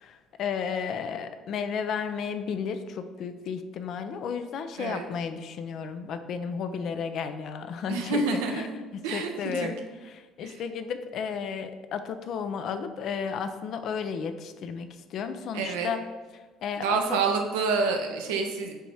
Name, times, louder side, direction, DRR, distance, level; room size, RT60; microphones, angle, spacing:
voice 1, 0.0-8.7 8.9-9.8 10.0-16.1 16.6-17.2, left 6 dB, 60° left, 9 dB, 0.5 m, -33 dB
voice 2, 7.9-8.7 9.0-9.3 9.6-9.7 10.4-10.5 15.5-15.9 16.8-18.7, right 4 dB, 85° right, 3 dB, 0.8 m, -28 dB
6.9 x 3.0 x 4.7 m, 1.3 s
hypercardioid pair, 70°, 0 cm